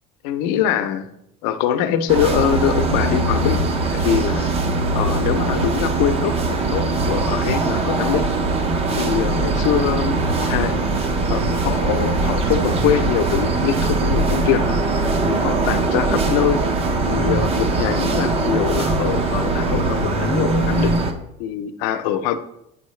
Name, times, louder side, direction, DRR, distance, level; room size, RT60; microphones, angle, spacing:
voice 1, 0.2-1.1 1.4-4.5 4.9-6.4 6.6-8.3 8.9-10.9 11.3-14.8 15.2-16.6 17.1-20.9 21.4-22.4, left 9 dB, 80° left, 9 dB, 0.7 m, -23 dB
sound 1, 2.1-21.1, right 3 dB, 30° right, 0.6 m, -21 dB
8.9 x 4.6 x 3.2 m, 0.79 s
cardioid pair, 150°, 20 cm